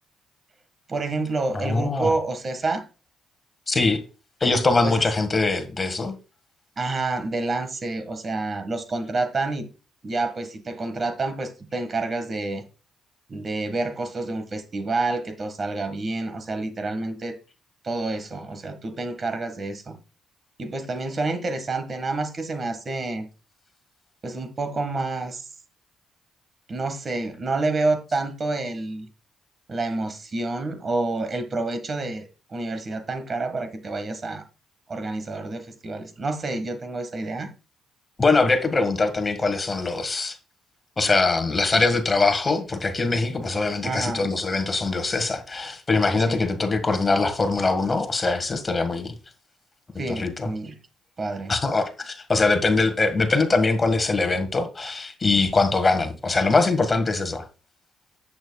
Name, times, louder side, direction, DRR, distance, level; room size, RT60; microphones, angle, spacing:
voice 1, 0.9-2.8 4.8-5.1 6.8-9.7 10.0-12.6 13.3-17.4 17.8-20.0 20.6-23.3 24.2-25.5 26.7-29.1 29.7-34.4 34.9-37.5 43.8-44.3 46.3-46.4 50.0-50.8 51.2-51.5, right 3 dB, 40° right, 1.6 m, -28 dB
voice 2, 1.5-2.1 3.7-4.0 4.4-6.1 38.2-40.4 41.0-49.1 50.1-50.5 51.5-57.5, left 3 dB, 25° left, 1.7 m, -22 dB
10.5 x 8.7 x 2.3 m
cardioid pair, 90°, 0 cm